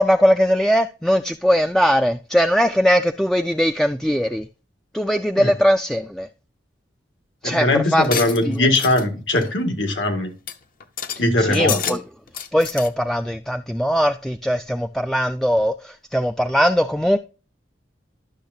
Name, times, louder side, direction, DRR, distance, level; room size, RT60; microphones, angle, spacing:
voice 1, 0.0-4.5 4.9-6.3 7.4-7.7 7.9-8.1 8.5-8.6 11.4-12.0 12.5-17.2, equal, ahead, 0.3 m, -20 dB
voice 2, 7.4-10.3 11.2-12.0, left 1 dB, 80° left, 2.0 m, -20 dB
sound 1, 8.0-9.1 9.3-9.6 10.0-10.1 10.5-10.6 10.8-11.2 11.5-12.0 12.3-12.9, left 8 dB, 50° left, 0.8 m, -29 dB
12.0 x 6.5 x 2.7 m
head